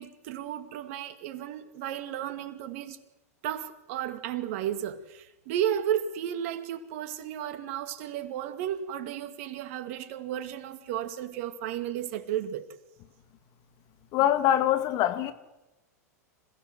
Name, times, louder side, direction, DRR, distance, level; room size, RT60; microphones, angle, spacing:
voice 1, 0.0-3.0 3.4-12.7, right 10 dB, 55° right, 2.3 m, -33 dB
voice 2, 14.1-15.3, left 11 dB, 45° left, 2.2 m, -24 dB
27.0 x 16.5 x 7.9 m
hypercardioid pair, 105°, 9 cm